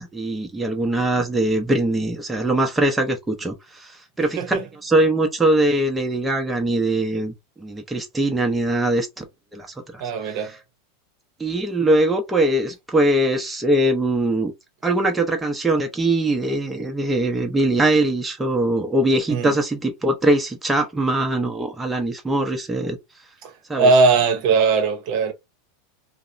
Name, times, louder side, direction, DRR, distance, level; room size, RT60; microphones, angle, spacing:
voice 1, 0.0-4.6 4.8-9.2 9.5-10.4 11.4-14.5 14.8-23.0 23.7-23.9, right 1 dB, 10° right, 0.6 m, -22 dB
voice 2, 10.0-10.6 19.3-19.6 23.4-25.3, right 4 dB, 55° right, 0.8 m, -19 dB
2.8 x 2.0 x 2.5 m
hypercardioid pair, 100°, 0 cm